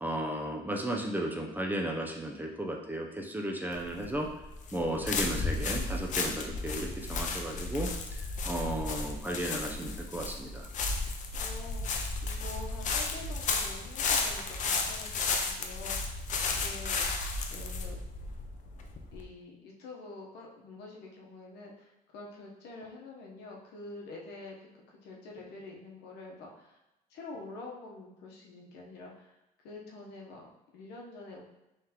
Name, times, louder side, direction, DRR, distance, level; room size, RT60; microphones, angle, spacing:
voice 1, 0.0-4.3 4.7-7.9 8.2-10.7, right 1 dB, 10° right, 1 dB, 0.4 m, -34 dB
sound 1, 3.7-19.2, left 4 dB, 45° left, 0.5 m, -33 dB
voice 2, 11.3-16.2 16.5-17.0 17.5-18.0 19.1-26.8 27.1-29.3 29.6-31.4, left 3 dB, 80° left, -1 dB, 0.9 m, -47 dB
3.6 x 3.2 x 2.8 m, 0.94 s
cardioid pair, 110°, 17 cm